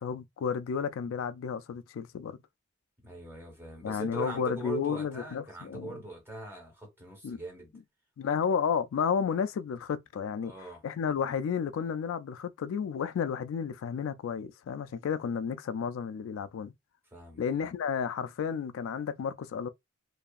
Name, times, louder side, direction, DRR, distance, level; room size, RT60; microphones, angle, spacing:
voice 1, 0.0-2.4 3.8-6.0 7.2-7.4 8.2-10.5 10.8-16.7 17.4-19.7, left 6 dB, 70° left, 0.3 m, -32 dB
voice 2, 3.0-7.7 10.4-10.8 17.1-17.4, right 2 dB, 10° right, 1.2 m, -41 dB
2.7 x 2.3 x 2.4 m
head